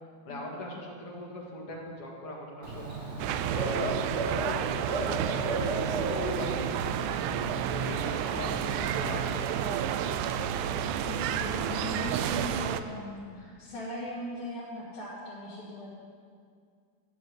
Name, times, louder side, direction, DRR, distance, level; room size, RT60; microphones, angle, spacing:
voice 1, 0.3-3.1 3.5-4.0 4.2-7.1 7.7-10.2 10.8-11.2, left 1 dB, 55° left, -2 dB, 2.5 m, -41 dB
Bird / Cricket, 2.6-12.3, right 2 dB, 50° right, 0.8 m, -36 dB
sound 1, 3.2-12.8, right 9 dB, 90° right, 2.1 m, -31 dB
voice 2, 8.3-8.9 11.1-15.9, equal, 75° left, -11 dB, 4.0 m, -39 dB
11.0 x 7.5 x 9.6 m, 2.2 s
omnidirectional pair, 3.5 m